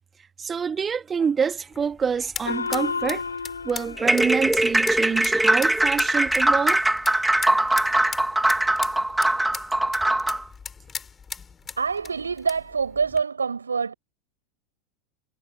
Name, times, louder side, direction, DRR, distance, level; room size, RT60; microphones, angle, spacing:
voice 1, 0.4-3.2 3.6-6.8, right 6 dB, 20° right, 2.7 m, -26 dB
sound 1, 1.6-13.2, left 6 dB, 20° left, 7.7 m, -39 dB
Gong, 2.5-5.4, left 5 dB, 80° left, 7.3 m, -32 dB
sound 2, 4.0-10.4, right 1 dB, 5° right, 4.6 m, -21 dB
voice 2, 11.8-13.9, right 5 dB, 80° right, 7.8 m, -26 dB
figure-of-eight pair, 85°, 0 cm